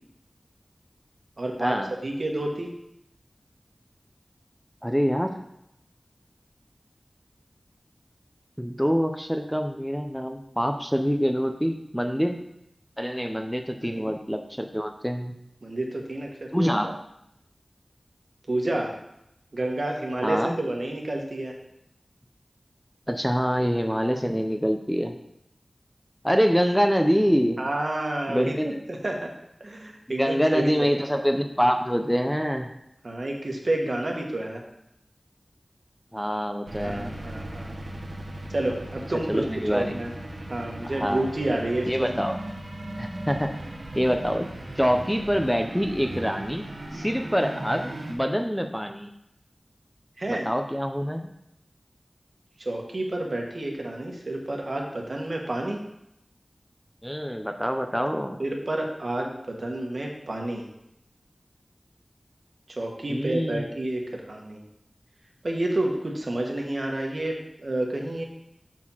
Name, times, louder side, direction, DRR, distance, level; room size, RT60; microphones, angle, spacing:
voice 1, 1.4-2.7 13.8-14.0 15.6-16.7 18.5-18.9 19.5-21.5 27.6-29.3 29.6-30.9 33.0-34.6 36.8-37.8 38.5-39.4 39.7-40.1 40.5-42.1 50.2-50.5 52.6-55.8 58.4-60.6 62.8-64.6 65.4-68.2, right 1 dB, 60° right, 1 dB, 1.4 m, -29 dB
voice 2, 4.8-5.4 8.6-12.4 13.0-15.3 16.5-17.0 20.2-20.6 23.1-25.1 26.2-27.6 28.3-28.8 30.2-32.7 36.1-37.1 39.3-39.9 40.8-41.2 41.8-42.4 43.0-43.6 44.0-44.5 44.8-46.7 46.9-49.1 50.3-51.3 57.0-58.4 63.1-63.6, equal, ahead, 5 dB, 0.6 m, -25 dB
sound 1, 36.7-48.1, right 1 dB, 90° right, 1.4 m, -37 dB
6.3 x 4.7 x 5.6 m, 0.81 s
wide cardioid pair, 60°, 0 cm